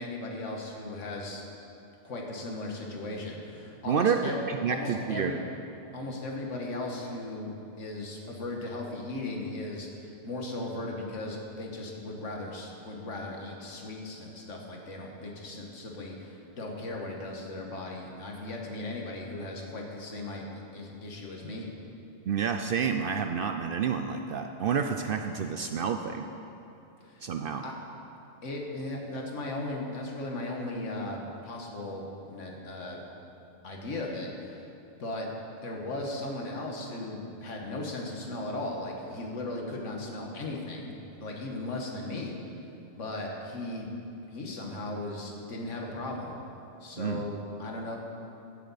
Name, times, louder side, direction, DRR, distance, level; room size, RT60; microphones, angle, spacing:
voice 1, 0.0-1.4 2.0-4.4 4.7-5.4 5.9-21.7 27.0-27.2 27.6-27.7 28.4-33.0 33.6-34.7 35.0-35.3 35.6-42.3 43.0-43.9 44.3-46.3 46.8-48.0, left 2 dB, 75° left, 0 dB, 1.7 m, -37 dB
voice 2, 3.9-5.3 22.3-26.2 27.2-27.6 47.0-47.2, right 6 dB, 60° right, 5 dB, 0.6 m, -29 dB
15.0 x 8.5 x 4.1 m, 2.8 s
omnidirectional pair, 1.3 m